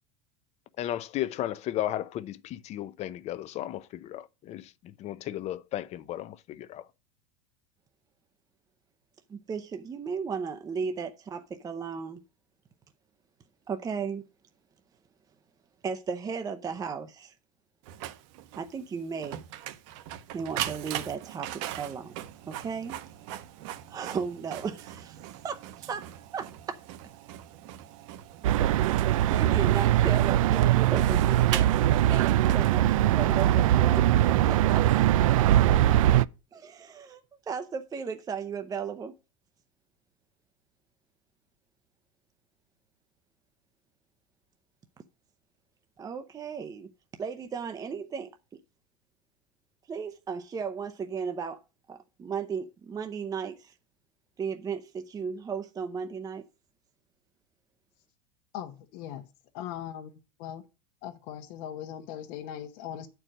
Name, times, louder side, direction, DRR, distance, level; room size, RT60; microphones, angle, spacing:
voice 1, 0.8-6.9, left 13 dB, 40° left, 0.7 m, -34 dB
voice 2, 9.3-12.2 13.7-14.2 15.8-17.3 18.6-19.4 20.3-22.1 22.5-23.0 23.9-25.2 25.4-26.8 28.9-31.7 32.1-34.1 34.5-34.9 36.5-37.2 37.5-39.1 46.0-46.9 47.2-48.4 49.9-51.6 51.9-53.7 54.4-56.4, right 6 dB, 20° right, 0.7 m, -35 dB
Printer, 17.8-33.2, right 12 dB, 70° right, 0.9 m, -40 dB
sound 1, 28.4-36.2, right 13 dB, 85° right, 0.4 m, -22 dB
voice 3, 58.5-59.3 59.5-60.6 61.0-63.1, left 10 dB, 60° left, 1.0 m, -39 dB
8.6 x 4.6 x 6.4 m
supercardioid pair, 115°, 17 cm